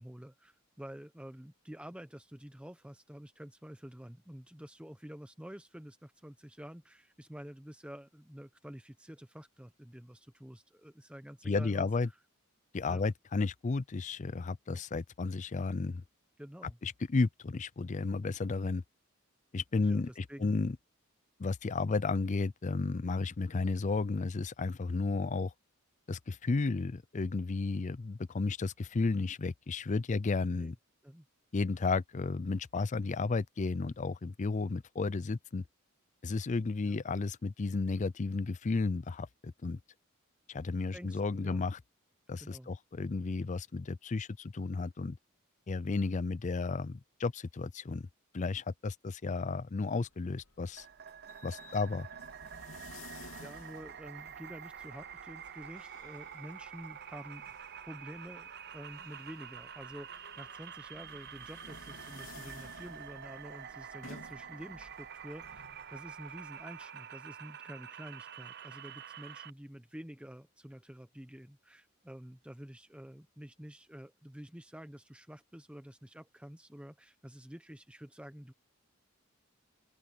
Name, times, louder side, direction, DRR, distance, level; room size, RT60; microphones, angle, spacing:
voice 1, 0.0-11.9 12.9-13.0 14.7-14.8 16.4-16.8 19.8-20.6 30.6-30.7 31.0-31.3 36.8-37.0 40.9-41.6 42.4-42.7 53.3-57.5 57.9-78.5, equal, 5° right, 0.8 m, -49 dB
voice 2, 11.5-12.1 12.7-16.0 16.8-18.8 19.5-20.8 21.4-25.5 26.1-30.8 31.5-35.6 36.2-39.8 40.5-41.8 42.3-45.2 45.7-48.1 48.3-50.9 51.4-52.1, left 3 dB, 35° left, 0.4 m, -33 dB
sound 1, 50.0-66.9, left 3 dB, 85° left, 2.9 m, -56 dB
sound 2, 50.8-69.5, right 8 dB, 50° right, 0.8 m, -47 dB
open air
head